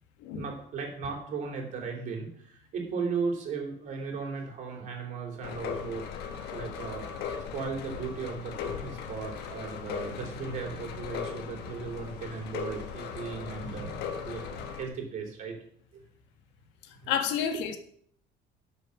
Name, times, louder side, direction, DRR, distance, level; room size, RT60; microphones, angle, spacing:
voice 1, 0.3-6.0 6.4-15.5 15.9-16.0 17.0-17.1, right 5 dB, 40° right, 1 dB, 3.3 m, -36 dB
sound 1, 5.4-14.8, left 7 dB, 60° left, 1.4 m, -38 dB
voice 2, 17.1-17.8, left 8 dB, 75° left, 6 dB, 1.6 m, -29 dB
12.0 x 5.6 x 7.1 m, 0.64 s
cardioid pair, 180°, 19 cm